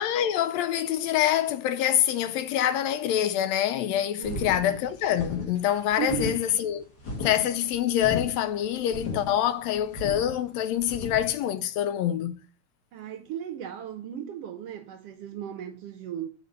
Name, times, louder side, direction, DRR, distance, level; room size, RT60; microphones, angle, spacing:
voice 1, 0.0-6.8 7.2-12.4, left 11 dB, 80° left, 1.7 m, -26 dB
sound 1, 4.2-11.3, left 3 dB, 40° left, 2.3 m, -36 dB
voice 2, 4.2-4.5 6.0-6.4 12.9-16.3, right 10 dB, 75° right, 1.5 m, -36 dB
7.9 x 4.9 x 5.2 m
omnidirectional pair, 3.3 m